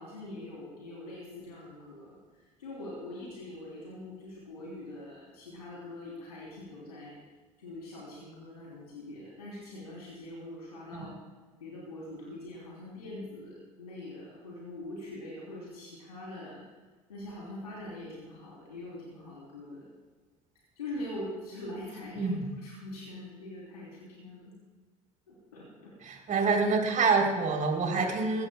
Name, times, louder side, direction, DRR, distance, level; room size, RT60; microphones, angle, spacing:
voice 1, 0.0-2.2 2.6-7.2 7.6-11.1 11.6-16.6 17.1-19.9 20.8-24.5 25.3-25.9 27.9-28.1, left 1 dB, 90° left, -5 dB, 3.4 m, -43 dB
voice 2, 26.0-28.5, right 4 dB, 45° right, 2 dB, 3.5 m, -26 dB
21.0 x 16.5 x 2.3 m, 1.4 s
hypercardioid pair, 65°, 19 cm